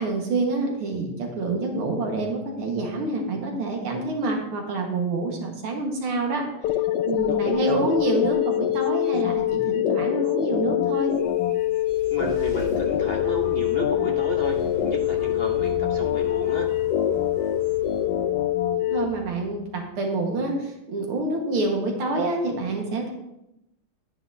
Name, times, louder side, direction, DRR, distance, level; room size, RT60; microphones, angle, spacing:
voice 1, 0.0-6.4 7.0-11.2 18.7-23.1, right 2 dB, 85° right, 1 dB, 2.4 m, -27 dB
sound 1, 6.6-19.0, left 12 dB, 85° left, 0.8 m, -24 dB
voice 2, 7.3-7.7 12.1-16.7, left 2 dB, 50° left, 0 dB, 0.7 m, -31 dB
sound 2, 10.9-20.0, right 2 dB, 25° left, 3.7 m, -41 dB
9.9 x 9.9 x 2.7 m, 0.86 s
omnidirectional pair, 2.3 m